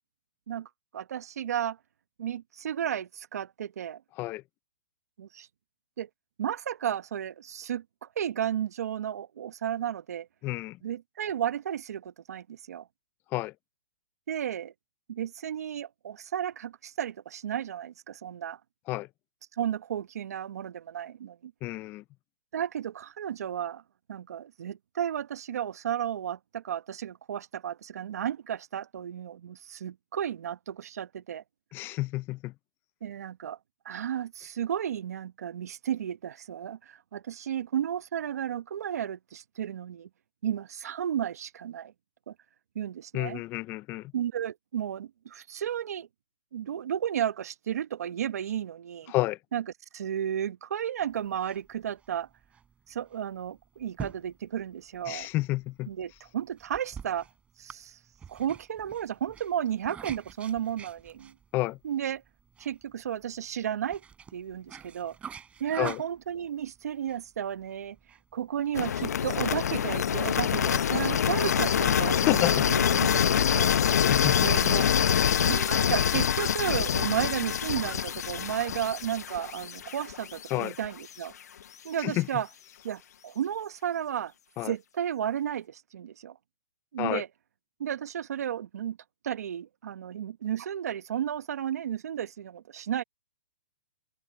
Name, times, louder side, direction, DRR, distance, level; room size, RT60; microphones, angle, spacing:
voice 1, 0.9-1.8 2.2-4.0 5.2-5.5 6.0-6.1 6.4-10.3 10.8-12.9 14.3-14.7 15.1-18.6 19.6-21.5 22.5-23.8 24.1-31.4 33.0-33.6 33.8-40.1 40.4-41.9 42.3-42.4 42.7-43.4 44.1-46.1 46.5-49.1 49.5-49.6 49.9-52.3 52.9-55.3 55.9-57.3 57.6-58.0 58.3-61.3 61.8-62.2 62.6-64.0 64.3-65.2 65.6-73.7 74.4-74.9 75.2-81.3 81.8-82.5 82.8-84.3 84.6-86.3 86.9-87.3 87.8-89.0 89.2-93.0, right 9 dB, 70° right, 1.2 m, -33 dB
voice 2, 10.4-10.8 13.3-13.5 18.9-19.1 21.6-22.0 31.7-32.5 43.1-44.1 49.1-49.4 55.1-55.9 61.5-61.8 65.8-66.0 72.2-72.8 74.1-74.4 80.5-80.7 82.0-82.3 84.6-84.7 87.0-87.2, left 18 dB, 25° left, 0.6 m, -30 dB
sound 1, 51.0-68.9, right 7 dB, 15° right, 6.3 m, -48 dB
sound 2, 68.7-80.7, left 8 dB, 75° left, 0.9 m, -25 dB
open air
hypercardioid pair, 145°, 9 cm